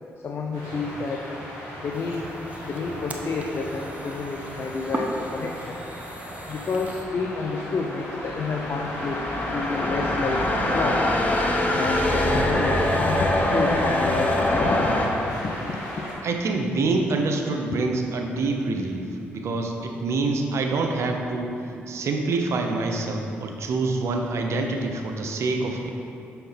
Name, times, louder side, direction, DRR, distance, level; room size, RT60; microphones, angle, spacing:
voice 1, 0.2-1.3 1.8-2.2 2.6-5.8 6.5-9.3 9.5-11.1 11.7-14.8 15.3-16.1, left 4 dB, 55° left, 1 dB, 0.6 m, -29 dB
sound 1, 0.5-16.1, equal, 90° left, 1.7 m, -37 dB
sound 2, 1.9-7.0, right 2 dB, 25° right, 0.8 m, -38 dB
sound 3, 7.1-15.1, left 1 dB, 30° left, 1.1 m, -24 dB
voice 2, 16.2-25.9, right 3 dB, 65° right, 3 dB, 0.8 m, -26 dB
6.4 x 4.5 x 5.8 m, 2.7 s
supercardioid pair, 55°, 5 cm